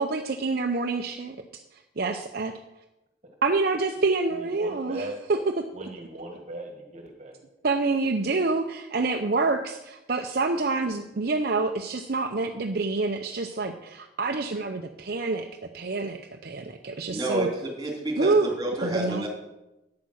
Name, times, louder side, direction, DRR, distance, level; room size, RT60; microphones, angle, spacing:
voice 1, 0.0-1.6 2.0-2.6 3.4-5.9 7.6-15.5 15.7-17.5 18.2-18.5 18.8-19.3, right 3 dB, 60° right, 5 dB, 0.7 m, -27 dB
voice 2, 4.3-5.2 5.7-7.4, right 1 dB, 40° right, 2 dB, 1.7 m, -39 dB
voice 3, 17.1-19.3, right 1 dB, 25° right, 0 dB, 3.0 m, -30 dB
9.6 x 8.4 x 6.4 m, 0.95 s
head